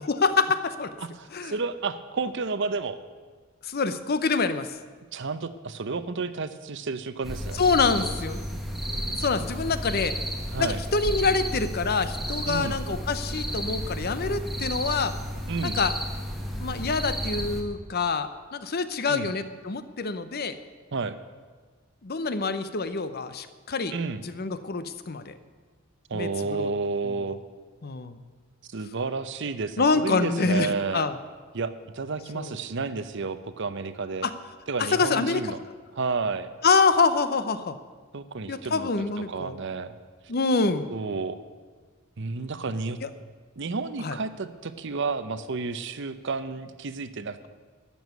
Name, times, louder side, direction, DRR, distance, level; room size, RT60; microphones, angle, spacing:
voice 1, 0.1-0.9 1.3-1.5 3.6-4.7 7.6-8.4 8.9-10.1 10.6-15.1 15.6-16.0 16.6-20.6 22.0-23.9 24.2-25.3 26.1-26.7 27.0-27.2 27.8-28.2 29.8-31.2 32.3-32.6 34.2-34.3 34.8-35.4 36.6-37.8 38.5-39.6 40.3-40.9 43.0-43.1 44.0-44.2, left 4 dB, 45° left, 12 dB, 0.7 m, -26 dB
voice 2, 1.0-3.0 5.1-7.6 10.5-10.8 12.5-12.8 15.5-15.8 19.1-19.3 20.9-21.1 23.9-24.2 26.1-27.4 28.7-31.1 31.5-34.3 34.7-35.6 36.0-36.5 38.1-38.9 39.3-40.0 40.9-41.4 42.2-43.0 43.6-47.5, right 4 dB, 60° right, 12 dB, 0.7 m, -31 dB
sound 1, 7.2-17.6, equal, ahead, 1.4 m, -32 dB
12.5 x 7.0 x 9.3 m, 1.5 s
head